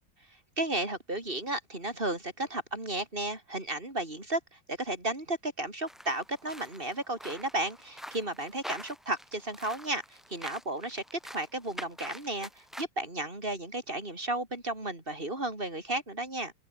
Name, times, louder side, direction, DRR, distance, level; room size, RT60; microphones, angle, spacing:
voice 1, 0.6-16.5, right 2 dB, 30° right, 5.1 m, -34 dB
sound 1, 5.9-12.8, equal, ahead, 5.7 m, -46 dB
open air
omnidirectional pair, 1.9 m